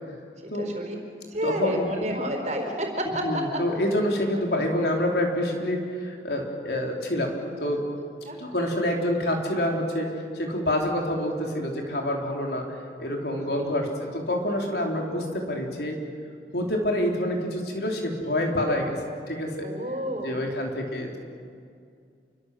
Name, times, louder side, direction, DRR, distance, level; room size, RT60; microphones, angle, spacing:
voice 1, 0.4-0.9 1.3-3.2 8.3-8.4 13.3-13.8 19.6-20.4, right 1 dB, 40° right, 2 dB, 4.8 m, -30 dB
voice 2, 1.4-1.9 3.2-7.8 8.4-10.1 10.3-16.0 16.5-19.0 19.3-19.7 20.2-21.2, left 1 dB, 65° left, 1 dB, 4.5 m, -27 dB
28.5 x 24.5 x 7.9 m, 2.3 s
head